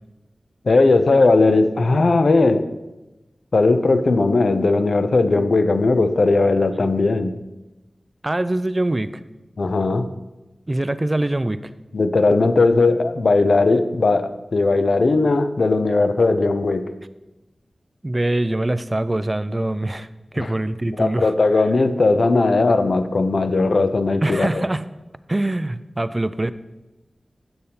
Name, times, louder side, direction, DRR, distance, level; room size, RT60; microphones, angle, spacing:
voice 1, 0.6-2.7 3.5-7.4 9.6-10.1 11.9-16.9 20.4-20.5 21.0-24.6, left 3 dB, 70° left, 10 dB, 0.5 m, -18 dB
voice 2, 8.2-9.1 10.7-11.6 18.0-21.3 24.2-24.9 25.3-26.5, right 1 dB, 30° right, 13 dB, 0.3 m, -23 dB
7.7 x 6.8 x 2.8 m, 1.0 s
cardioid pair, 45°, 0 cm